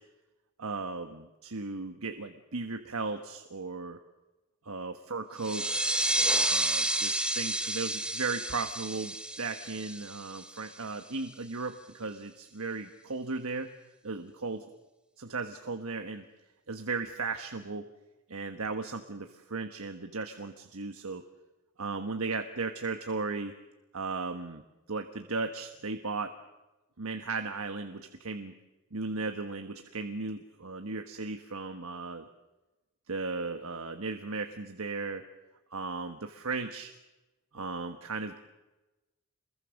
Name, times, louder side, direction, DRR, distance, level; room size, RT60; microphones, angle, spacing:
voice 1, 0.6-4.0 4.7-5.8 6.1-13.7 14.0-14.6 15.2-16.2 16.7-17.8 18.3-21.2 21.8-23.5 23.9-24.6 24.9-26.3 27.0-28.5 28.9-32.3 33.1-35.2 35.7-36.9 37.5-38.4, right 3 dB, 70° right, 6 dB, 1.4 m, -36 dB
sound 1, 5.4-10.7, right 1 dB, 5° right, 1.1 m, -30 dB
27.5 x 21.5 x 6.5 m, 1.1 s
head